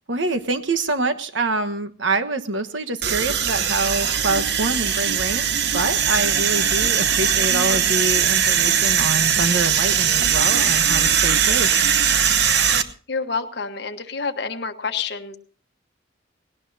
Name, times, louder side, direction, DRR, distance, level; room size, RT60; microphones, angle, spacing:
voice 1, 0.1-11.7, right 2 dB, 75° right, 9 dB, 1.3 m, -26 dB
sound 1, 3.0-12.8, right 8 dB, 60° right, 1.0 m, -20 dB
voice 2, 13.1-15.4, left 5 dB, 55° left, 7 dB, 1.3 m, -28 dB
19.0 x 18.0 x 2.8 m, 0.42 s
head